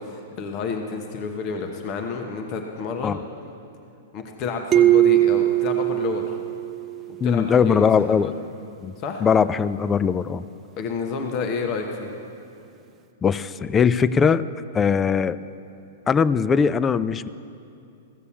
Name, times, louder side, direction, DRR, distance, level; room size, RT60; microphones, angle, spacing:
voice 1, 0.0-3.2 4.1-6.3 7.2-8.1 9.0-9.2 10.8-12.1, left 5 dB, 40° left, 3 dB, 1.0 m, -30 dB
sound 1, 4.7-7.3, right 14 dB, 30° right, 0.7 m, -20 dB
voice 2, 7.2-8.3 8.8-8.9 9.2-10.4 13.2-14.4 14.7-15.4 16.1-17.3, left 6 dB, 20° left, 16 dB, 0.3 m, -20 dB
15.5 x 6.9 x 7.1 m, 2.6 s
hypercardioid pair, 120°, 0 cm